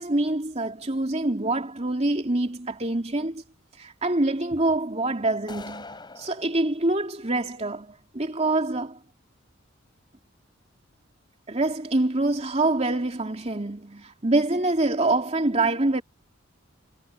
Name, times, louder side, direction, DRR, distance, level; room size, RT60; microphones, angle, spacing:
voice 1, 0.0-3.4 3.8-9.0 11.5-16.0, right 2 dB, 30° right, 2.9 m, -25 dB
sound 1, 5.5-6.5, left 3 dB, 25° left, 4.0 m, -41 dB
head